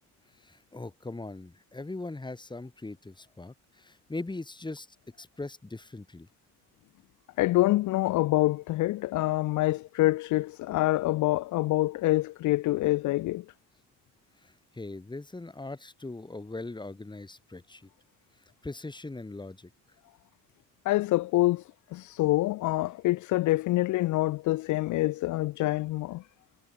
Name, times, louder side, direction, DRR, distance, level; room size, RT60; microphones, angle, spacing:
voice 1, 0.4-4.9 5.2-6.3 14.4-17.9 18.6-19.7, left 2 dB, 15° left, 2.7 m, -40 dB
voice 2, 7.4-13.4 20.9-21.6 21.9-26.2, left 18 dB, 75° left, 0.5 m, -26 dB
cardioid pair, 90°, 30 cm